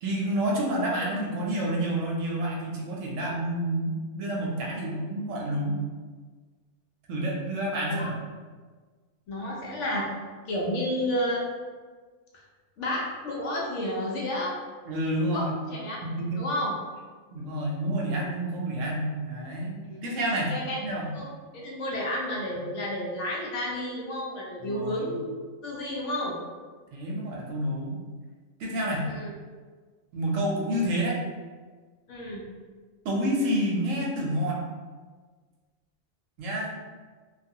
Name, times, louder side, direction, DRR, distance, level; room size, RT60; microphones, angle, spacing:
voice 1, 0.0-5.8 7.1-8.1 14.9-15.5 16.0-16.4 17.3-20.5 20.8-21.1 24.6-25.1 26.9-28.0 28.6-29.1 30.1-31.2 33.0-34.6 36.4-36.8, right 1 dB, 75° right, -2 dB, 0.9 m, -29 dB
voice 2, 9.3-10.1 10.5-11.4 12.8-14.5 15.3-16.0 16.4-16.7 19.8-20.0 20.5-20.8 21.1-21.3 21.5-25.3 25.6-26.4 29.0-29.3 32.1-32.4, left 1 dB, 70° left, -3 dB, 0.8 m, -31 dB
2.4 x 2.3 x 2.6 m, 1.4 s
omnidirectional pair, 1.4 m